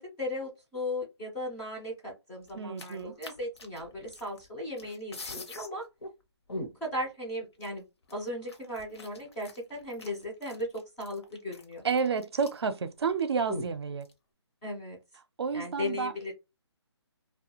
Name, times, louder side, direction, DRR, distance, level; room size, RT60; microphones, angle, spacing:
voice 1, 0.0-5.9 6.8-7.8 8.1-11.8 14.6-15.0 15.5-16.3, left 1 dB, 5° left, 0.4 m, -37 dB
sound 1, 2.5-4.5 4.8-5.7 6.0-6.1 6.5-7.0 7.6-7.7 8.1-12.7 13.0-13.1 13.5-14.1, left 1 dB, 65° left, 0.8 m, -42 dB
voice 2, 2.5-3.2 11.8-14.1 15.4-16.1, right 5 dB, 65° right, 0.4 m, -30 dB
2.3 x 2.2 x 2.8 m
hypercardioid pair, 165°, 15 cm